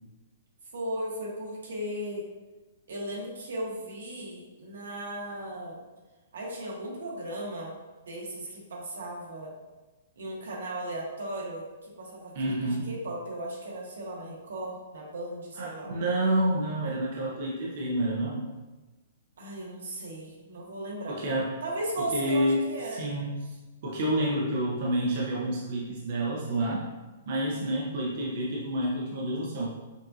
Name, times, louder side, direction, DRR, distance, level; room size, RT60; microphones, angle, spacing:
voice 1, 0.7-2.3 2.9-5.8 6.3-7.7 8.1-9.5 10.2-15.9 19.4-21.2 21.6-23.0, right 1 dB, 85° right, -3 dB, 1.2 m, -36 dB
voice 2, 12.3-12.9 15.6-18.5 21.1-21.5 22.0-22.6 22.9-23.3 23.8-26.9 27.3-29.7, right 1 dB, 40° right, -4 dB, 0.6 m, -29 dB
5.3 x 2.5 x 2.7 m, 1.2 s
hypercardioid pair, 175°, 0 cm